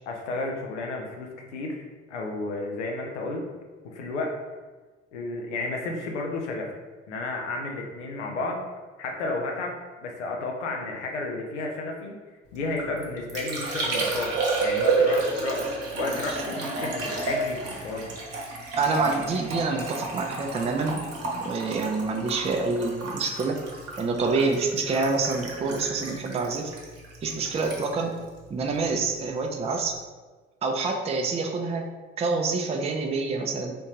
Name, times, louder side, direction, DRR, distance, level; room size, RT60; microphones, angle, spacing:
voice 1, 0.1-1.8 2.1-3.4 3.8-4.4 5.1-6.7 7.1-8.6 9.0-12.2 12.5-14.3 14.6-18.1, left 2 dB, 80° left, 1 dB, 0.6 m, -32 dB
Liquid, 12.6-29.2 29.4-30.0, right 3 dB, 45° right, 1.0 m, -31 dB
voice 2, 18.8-21.0 21.3-23.6 24.0-26.7 27.2-28.1 28.5-29.9 30.6-31.8 32.2-33.7, right 3 dB, 20° right, 2 dB, 0.4 m, -27 dB
3.5 x 2.6 x 2.8 m, 1.3 s
figure-of-eight pair, 50°, 35 cm